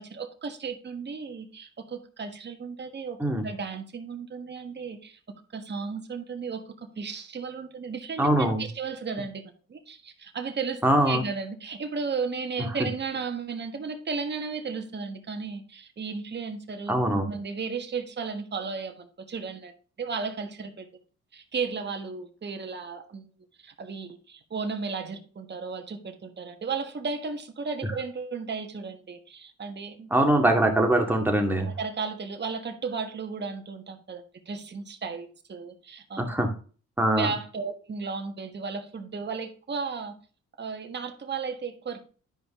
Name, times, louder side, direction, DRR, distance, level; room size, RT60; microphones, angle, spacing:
voice 1, 0.0-3.2 3.4-5.2 5.5-16.9 17.3-19.7 20.0-20.9 21.3-23.3 23.6-30.1 31.6-36.2 37.2-40.1 40.6-42.0, right 5 dB, 35° right, 5 dB, 1.5 m, -34 dB
voice 2, 8.2-8.7 10.8-11.2 16.9-17.3 30.1-31.7 36.2-36.5 37.0-37.3, right 1 dB, 5° right, 2 dB, 2.1 m, -22 dB
11.0 x 5.1 x 3.7 m, 0.39 s
cardioid pair, 90°, 30 cm